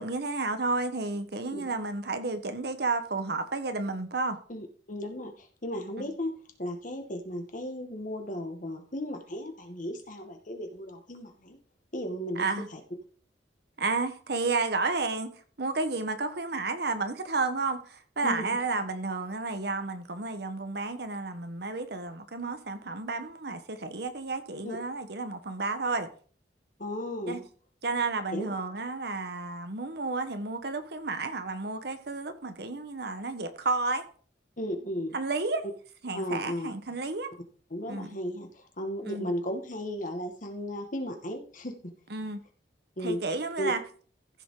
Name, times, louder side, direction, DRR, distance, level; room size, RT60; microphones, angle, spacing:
voice 1, 0.0-4.4 12.4-12.7 13.8-15.3 15.6-26.1 27.3-27.4 27.8-34.0 35.1-35.6 36.0-37.3 37.9-38.2 39.1-39.3 42.1-42.4 43.0-43.8, right 3 dB, 65° right, 1.3 m, -31 dB
voice 2, 4.5-11.6 11.9-12.8 18.2-18.5 24.6-24.8 26.8-27.4 28.3-28.5 34.6-35.2 36.1-36.7 37.7-41.9 43.0-43.2 43.6-43.7, equal, 45° left, 1.9 m, -35 dB
14.5 x 7.0 x 3.9 m
head